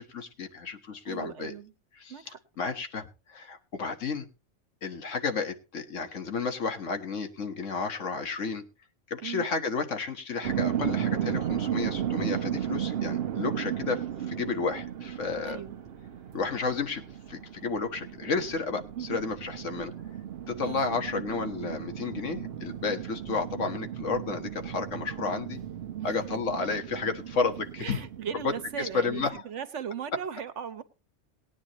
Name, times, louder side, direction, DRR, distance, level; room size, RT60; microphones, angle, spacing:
voice 1, 0.0-1.5 2.0-2.1 2.6-4.3 4.8-8.6 9.1-15.6 16.3-17.0 17.3-19.9 20.5-25.6 26.0-28.0 28.4-29.4, left 4 dB, 80° left, 6 dB, 1.7 m, -32 dB
voice 2, 1.0-1.7 2.1-2.4 9.2-9.4 15.5-15.8 18.9-19.2 20.6-21.0 25.9-26.4 27.8-30.8, right 8 dB, 75° right, 12 dB, 1.4 m, -38 dB
sound 1, 10.4-29.4, right 10 dB, 60° right, 1.0 m, -35 dB
19.5 x 9.6 x 3.0 m, 0.30 s
omnidirectional pair, 1.3 m